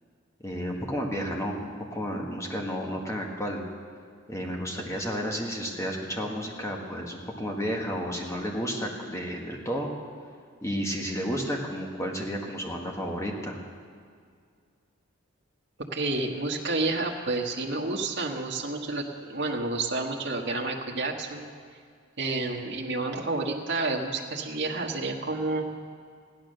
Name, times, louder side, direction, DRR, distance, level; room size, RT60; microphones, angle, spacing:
voice 1, 0.4-3.6 4.3-9.9 10.6-13.6, equal, 15° left, 0 dB, 1.7 m, -32 dB
voice 2, 15.9-21.5 22.2-25.7, right 3 dB, 55° right, 0 dB, 1.4 m, -30 dB
15.5 x 11.0 x 6.6 m, 2.1 s
head